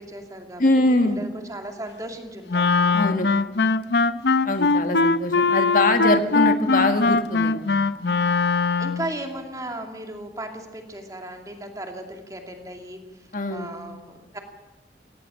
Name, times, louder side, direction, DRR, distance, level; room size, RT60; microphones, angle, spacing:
voice 1, 0.0-3.0 8.8-14.4, right 1 dB, 20° right, 4 dB, 2.5 m, -36 dB
voice 2, 0.6-1.2 2.9-3.3 4.4-7.7 13.3-13.7, left 2 dB, 50° left, 6 dB, 1.7 m, -22 dB
Wind instrument woodwind instrument, 2.5-9.1, left 4 dB, 70° left, 0.7 m, -21 dB
17.5 x 17.5 x 8.8 m, 1.1 s
head